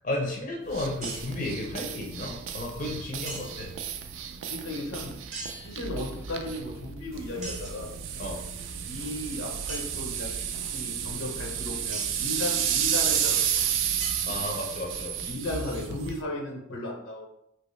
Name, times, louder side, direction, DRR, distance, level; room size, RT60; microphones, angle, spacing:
voice 1, 0.0-3.7 8.2-8.4 14.2-15.4, left 1 dB, 40° left, -1 dB, 0.6 m, -33 dB
sound 1, 0.7-16.2, right 8 dB, 75° right, 0.3 m, -32 dB
sound 2, 1.0-1.5 3.2-3.8 5.3-6.2 7.4-7.9 9.7-9.9 11.9-12.3 14.0-14.8, right 3 dB, 35° right, 0.6 m, -41 dB
voice 2, 4.5-5.2 5.6-7.9 8.9-13.5 15.3-17.3, left 2 dB, 85° left, 0 dB, 0.8 m, -35 dB
2.9 x 2.8 x 3.1 m, 0.75 s
head